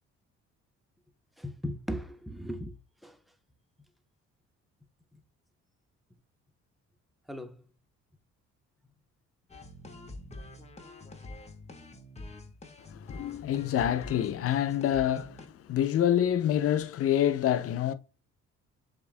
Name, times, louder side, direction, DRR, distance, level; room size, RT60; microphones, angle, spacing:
voice 1, 1.4-2.8 3.0-3.2 5.1-5.2 7.3-7.6, equal, ahead, 0.6 m, -37 dB
sound 1, 9.5-15.5, left 2 dB, 20° left, 1.0 m, -46 dB
voice 2, 12.9-17.9, left 10 dB, 50° left, 0.5 m, -27 dB
6.9 x 2.5 x 2.4 m
cardioid pair, 90°, 30 cm